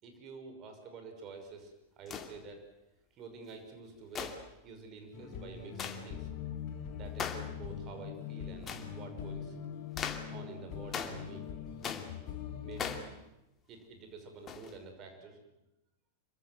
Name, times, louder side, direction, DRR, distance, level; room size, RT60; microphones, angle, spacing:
voice 1, 0.0-2.6 3.2-6.3 6.9-9.6 10.3-11.4 12.6-13.1 13.7-15.4, right 4 dB, 35° right, 5 dB, 5.9 m, -48 dB
sound 1, 2.1-2.4 4.1-4.5 5.8-6.0 7.2-7.5 8.6-8.9 10.0-10.3 10.9-11.3 11.8-12.2 12.8-13.1 14.5-14.7, left 7 dB, 25° left, 2.4 m, -39 dB
sound 2, 5.1-13.0, left 8 dB, 40° left, 3.6 m, -42 dB
26.0 x 23.5 x 7.8 m, 0.91 s
figure-of-eight pair, 90°, 0 cm